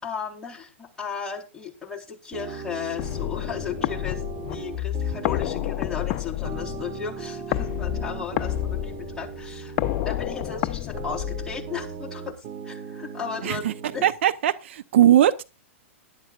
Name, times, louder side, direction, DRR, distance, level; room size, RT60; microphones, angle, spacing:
voice 1, 0.0-4.2 4.5-9.8 10.0-12.3 12.6-13.6 13.9-14.1, left 6 dB, 10° left, 3.8 m, -35 dB
sound 1, 2.3-14.1, right 6 dB, 40° right, 2.5 m, -38 dB
sound 2, 3.0-11.9, left 15 dB, 40° left, 0.7 m, -30 dB
voice 2, 13.4-13.7 14.0-15.4, right 11 dB, 65° right, 0.7 m, -19 dB
19.5 x 11.5 x 2.4 m
hypercardioid pair, 130°, 7 cm